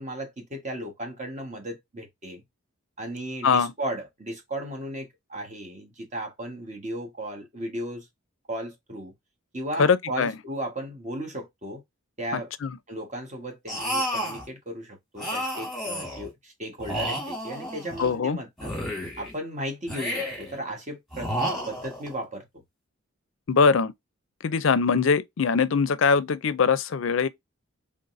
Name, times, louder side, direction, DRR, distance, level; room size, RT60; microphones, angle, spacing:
voice 1, 0.0-2.4 3.0-8.1 8.5-9.1 9.5-11.8 12.2-12.5 12.9-18.7 19.2-22.6, right 1 dB, 35° right, 1.5 m, -35 dB
voice 2, 9.8-10.3 12.6-12.8 18.0-18.4 23.5-23.9 24.4-27.3, left 5 dB, 65° left, 0.5 m, -22 dB
sound 1, 13.7-14.5 15.2-16.3 16.8-18.1 18.6-19.4 19.9-20.6 21.1-22.1, equal, ahead, 1.9 m, -31 dB
3.9 x 3.6 x 2.6 m
head